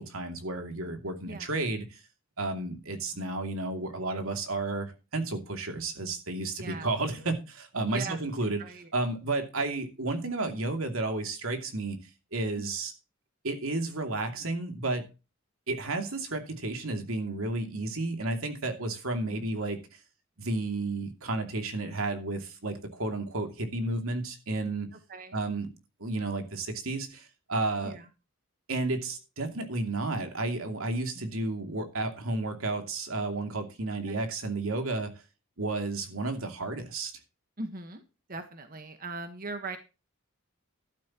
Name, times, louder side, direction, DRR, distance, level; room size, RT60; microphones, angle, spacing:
voice 1, 0.0-2.0 2.4-8.6 8.9-12.0 12.3-12.9 13.4-15.1 15.7-19.8 20.4-24.9 25.3-25.7 26.0-28.0 28.7-35.1 35.6-37.1, right 2 dB, 80° right, 2.7 m, -32 dB
voice 2, 8.6-8.9 12.6-12.7 19.3-19.4 24.9-25.4 27.8-28.1 31.2-31.3 34.1-34.2 37.6-38.0 38.3-39.8, right 3 dB, 40° right, 1.4 m, -40 dB
13.0 x 11.5 x 3.0 m
head